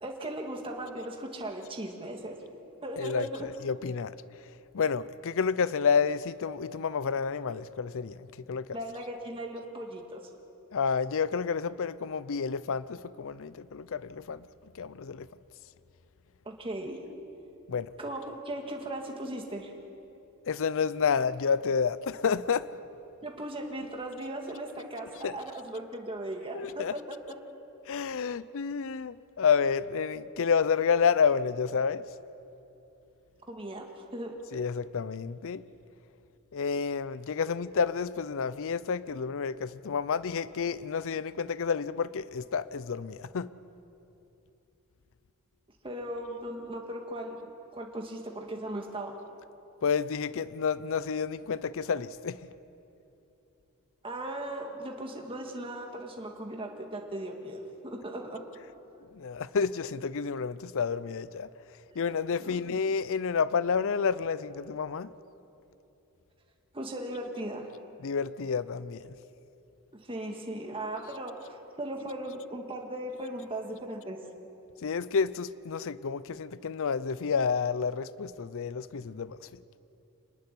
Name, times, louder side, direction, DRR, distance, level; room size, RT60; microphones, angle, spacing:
voice 1, 0.0-2.4 2.8-3.5 8.7-10.2 16.5-17.0 18.0-19.7 23.2-27.2 33.5-33.9 34.1-34.4 45.8-49.1 54.0-58.4 62.4-62.6 66.7-67.7 70.1-74.2, right 1 dB, 25° right, 1.8 m, -37 dB
voice 2, 3.0-4.1 4.7-8.7 10.7-14.4 14.8-15.3 17.7-17.9 20.5-22.7 25.2-25.3 26.5-26.9 27.9-32.0 34.5-35.6 36.5-43.5 49.8-52.4 59.1-61.5 62.0-65.1 68.0-69.0 74.8-79.4, left 6 dB, 60° left, 0.5 m, -29 dB
25.5 x 10.5 x 9.9 m
head